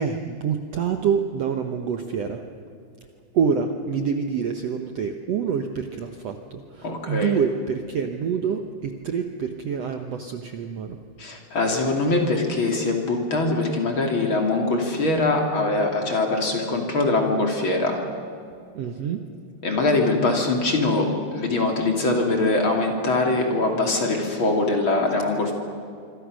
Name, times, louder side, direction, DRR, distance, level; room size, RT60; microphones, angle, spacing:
voice 1, 0.0-2.4 3.3-11.0 18.7-19.2, right 6 dB, 85° right, 5 dB, 1.4 m, -26 dB
voice 2, 6.8-7.3 11.2-18.0 19.6-25.5, left 2 dB, 35° left, 2 dB, 3.0 m, -22 dB
26.0 x 25.5 x 6.4 m, 2.5 s
omnidirectional pair, 4.6 m